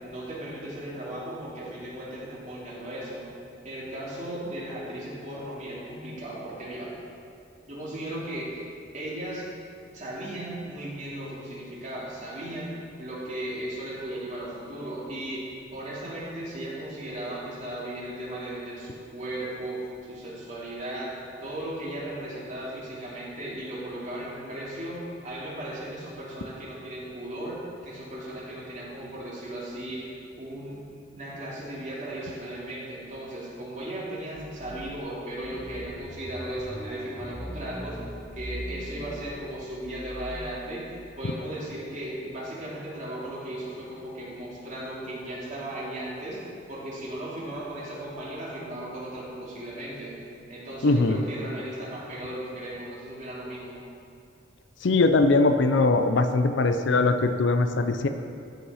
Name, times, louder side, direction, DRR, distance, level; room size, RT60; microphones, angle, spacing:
voice 1, 0.0-3.3 3.6-6.9 7.7-8.6 8.9-9.4 9.9-12.7 13.0-19.8 20.1-21.1 21.4-27.6 27.8-30.1 30.4-30.8 31.1-38.0 38.3-40.8 41.2-46.4 46.7-50.1 50.5-53.8, right 1 dB, 40° right, -7 dB, 2.6 m, -36 dB
sound 1, 34.4-35.0 35.4-40.5, equal, 5° right, 0.8 m, -40 dB
voice 2, 50.8-51.2 54.8-58.1, left 3 dB, 65° left, 8 dB, 0.5 m, -21 dB
13.5 x 5.4 x 4.9 m, 2.4 s
head